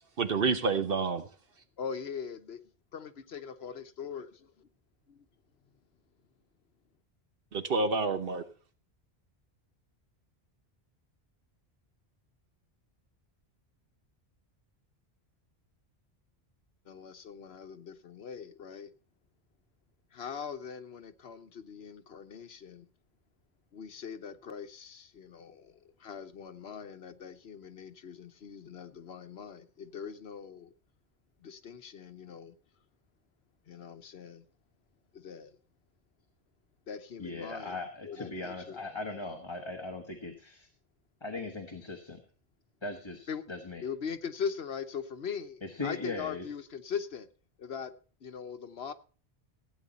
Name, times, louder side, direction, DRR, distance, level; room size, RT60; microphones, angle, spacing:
voice 1, 0.2-1.2 7.5-8.4, right 4 dB, 65° right, 1.2 m, -28 dB
voice 2, 1.8-2.6 2.9-4.7 5.1-5.2 16.9-18.9 20.1-22.9 23.7-30.7 31.4-32.5 33.7-34.4 35.1-35.6 36.9-38.8 43.3-43.4 43.8-47.3 47.6-47.9 48.2-48.9, left 7 dB, 75° left, 1.2 m, -41 dB
voice 3, 37.2-40.7 41.2-42.2 42.8-43.8 45.6-46.4, left 3 dB, 25° left, 1.4 m, -39 dB
16.0 x 9.0 x 4.1 m
omnidirectional pair, 1.1 m